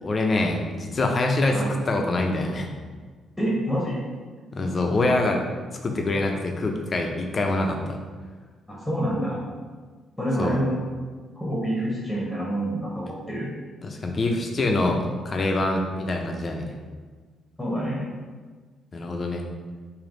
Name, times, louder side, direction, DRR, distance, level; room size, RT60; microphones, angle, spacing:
voice 1, 0.0-2.7 4.5-5.4 5.8-8.0 10.4-10.6 13.8-16.7 18.9-19.4, left 2 dB, 40° left, 2 dB, 0.6 m, -25 dB
voice 2, 3.4-4.0 8.7-9.4 10.2-10.8 11.3-13.5 17.6-18.0, equal, 5° left, -5 dB, 1.0 m, -27 dB
3.4 x 2.7 x 3.8 m, 1.4 s
cardioid pair, 90°, 0 cm